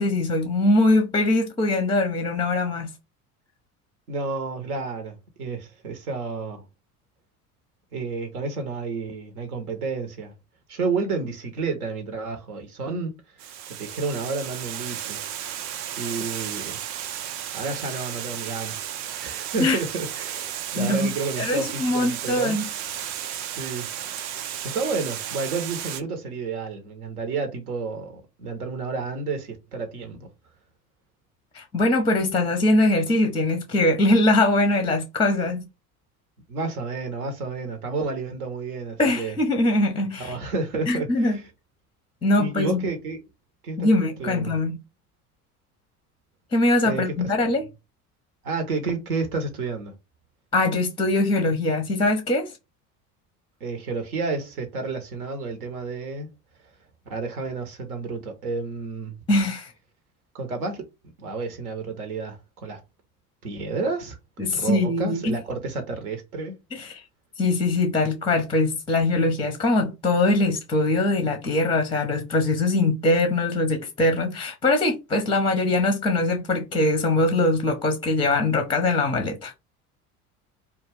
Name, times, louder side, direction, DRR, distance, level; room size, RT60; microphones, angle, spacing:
voice 1, 0.0-2.9 19.6-19.8 20.7-21.1 21.4-22.6 31.5-35.6 39.0-40.4 40.9-41.4 42.2-42.8 43.8-44.8 46.5-47.6 50.5-52.5 59.3-59.7 64.4-65.3 66.7-67.0 67.4-79.5, left 2 dB, 10° left, 0.5 m, -22 dB
voice 2, 4.1-6.6 7.9-10.3 10.7-15.2 16.0-17.0 17.5-18.8 19.2-22.6 23.6-23.9 24.6-30.3 36.5-39.4 40.2-41.5 42.4-43.2 43.6-43.9 44.2-44.5 46.8-47.3 48.4-49.9 53.6-56.3 57.1-59.2 60.3-60.9 61.2-62.8 63.4-64.2 64.5-66.6, right 4 dB, 75° right, 0.8 m, -30 dB
Water, 13.4-26.0, right 10 dB, 45° right, 0.4 m, -34 dB
2.3 x 2.3 x 3.2 m
figure-of-eight pair, 65°, 45 cm